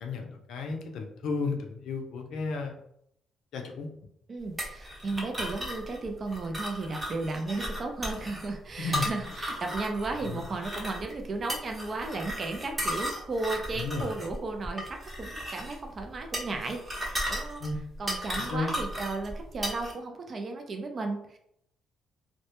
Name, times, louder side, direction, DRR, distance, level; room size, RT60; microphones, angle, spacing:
voice 1, 0.0-2.7 3.5-3.9 8.8-9.1 10.3-10.4 13.7-14.1 17.6-17.8 18.4-18.7, left 4 dB, 80° left, 3 dB, 0.4 m, -33 dB
voice 2, 4.3-17.6 18.0-21.4, right 3 dB, 45° right, 3 dB, 0.4 m, -35 dB
sound 1, 4.6-19.9, equal, 20° right, 0.8 m, -36 dB
2.1 x 2.1 x 2.8 m, 0.73 s
cardioid pair, 90°, 0 cm